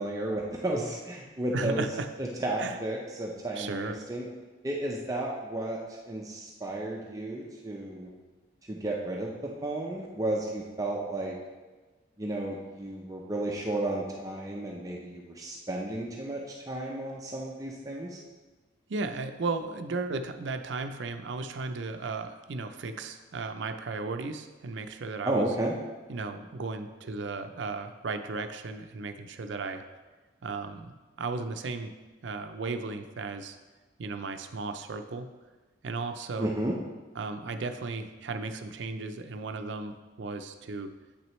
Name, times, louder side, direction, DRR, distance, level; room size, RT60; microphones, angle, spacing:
voice 1, 0.0-1.9 2.2-4.3 4.6-5.8 6.1-8.1 8.7-11.4 12.2-18.2 25.2-25.7 36.4-36.8, right 1 dB, 20° right, -2 dB, 0.6 m, -33 dB
voice 2, 1.5-2.1 2.6-2.8 3.6-4.0 18.9-25.5 26.1-29.8 30.4-31.9 32.2-33.6 34.0-35.3 35.8-36.5 37.2-40.9, right 3 dB, 70° right, 8 dB, 0.5 m, -35 dB
8.2 x 6.1 x 3.1 m, 1.3 s
head